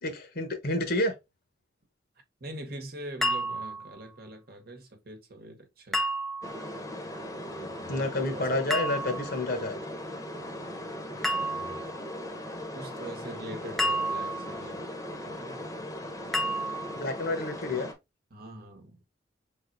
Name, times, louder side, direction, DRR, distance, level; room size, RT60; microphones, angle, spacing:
voice 1, 0.0-1.1 7.9-9.8 17.0-17.9, left 2 dB, 55° left, 1.0 m, -29 dB
voice 2, 2.4-6.0 7.5-8.6 11.1-11.8 12.7-15.6 17.3-17.4 18.3-19.0, right 1 dB, 55° right, 1.0 m, -44 dB
sound 1, 3.2-3.9 5.9-6.6 8.7-9.4 11.2-11.9 13.8-14.7 16.3-17.1, right 1 dB, ahead, 0.4 m, -30 dB
sound 2, 6.4-17.9, left 1 dB, 20° left, 0.9 m, -39 dB
5.3 x 3.5 x 2.6 m
head